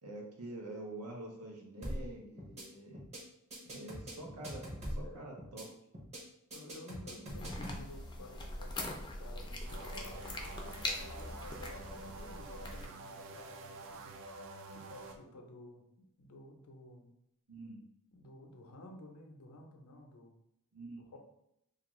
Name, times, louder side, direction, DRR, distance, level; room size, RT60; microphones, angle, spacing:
voice 1, 0.0-3.0 3.7-4.6 4.9-5.7 17.5-17.8 20.7-21.2, right 2 dB, 90° right, -1 dB, 0.7 m, -46 dB
sound 1, 1.8-2.1 2.4-2.6 2.9-3.2 3.5-5.1 5.4-5.6 5.9-6.2 6.5-7.8, equal, 30° right, 0.7 m, -42 dB
voice 2, 4.9-5.3 6.5-14.1 14.7-15.9 16.2-17.1 18.1-20.3 21.1-21.2, left 1 dB, 90° left, 2 dB, 0.5 m, -53 dB
sound 2, 7.3-12.9, left 1 dB, 20° left, 0.3 m, -42 dB
sound 3, 9.6-15.2, right 2 dB, 60° right, 0.3 m, -48 dB
2.4 x 2.4 x 3.0 m, 0.79 s
head